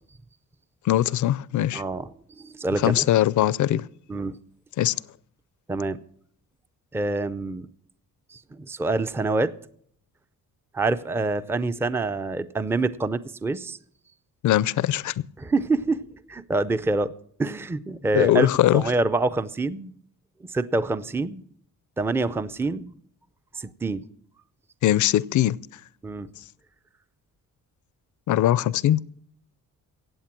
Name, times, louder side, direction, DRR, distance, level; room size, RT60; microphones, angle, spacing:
voice 1, 0.9-1.8 2.8-3.9 4.8-4.9 14.4-15.1 18.1-18.8 24.8-25.6 28.3-29.0, left 13 dB, 65° left, 0.5 m, -21 dB
voice 2, 1.7-2.1 2.4-3.0 4.1-4.3 5.7-6.0 6.9-7.7 8.3-8.4 8.7-9.5 10.7-13.8 15.4-17.1 17.4-19.9 20.5-21.4 22.0-22.9 23.6-24.0 26.0-26.3, right 3 dB, 5° right, 0.4 m, -26 dB
16.0 x 8.5 x 6.0 m
cardioid pair, 135°, 33 cm